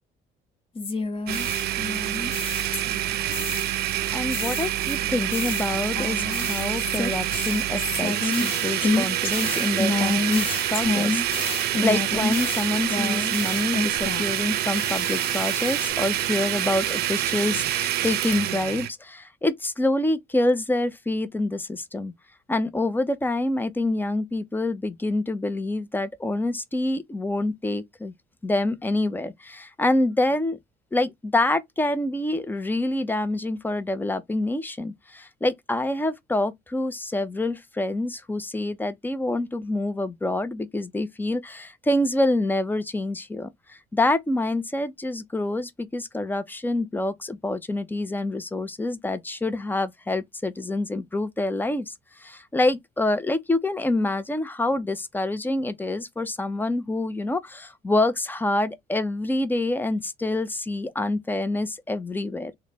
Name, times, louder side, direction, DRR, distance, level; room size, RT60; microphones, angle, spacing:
sound 1, 0.8-3.1 3.3-3.9 4.3-14.4 14.7-15.9, left 3 dB, 30° left, 0.9 m, -29 dB
Domestic sounds home sounds, 1.3-18.9, right 13 dB, 70° right, 0.5 m, -27 dB
voice 1, 4.1-22.1 22.5-28.1 28.4-30.6 30.9-51.9 52.2-62.5, left 2 dB, 10° left, 0.5 m, -26 dB
3.1 x 2.1 x 4.0 m
cardioid pair, 110°, 17 cm